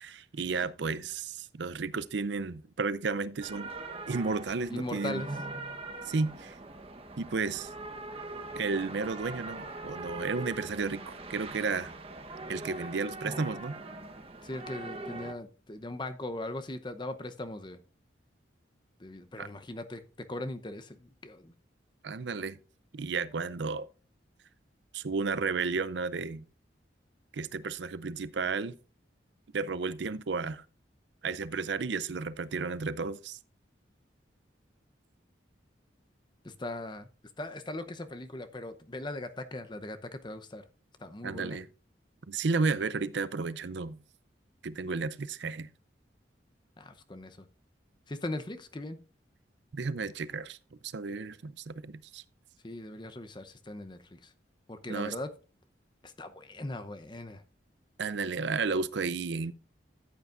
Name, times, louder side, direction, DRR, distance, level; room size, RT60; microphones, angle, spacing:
voice 1, 0.0-3.7 4.1-5.3 6.0-6.6 7.2-7.7 8.6-11.9 12.5-13.7 19.4-19.5 22.0-22.6 22.9-23.9 24.9-26.5 27.3-28.8 29.5-30.6 31.2-33.4 41.2-41.7 42.3-44.0 44.6-45.7 49.7-50.6 50.8-52.2 54.9-55.1 58.0-59.5, right 4 dB, 70° right, 0.5 m, -33 dB
sound 1, 3.4-15.3, right 2 dB, 30° right, 1.0 m, -42 dB
voice 2, 4.7-5.3 14.4-17.8 19.0-21.5 36.4-37.1 37.4-40.6 41.0-41.6 46.8-47.4 48.1-49.0 52.6-54.3 54.7-55.3 56.0-57.4, left 1 dB, 25° left, 0.7 m, -39 dB
13.5 x 8.2 x 2.5 m
head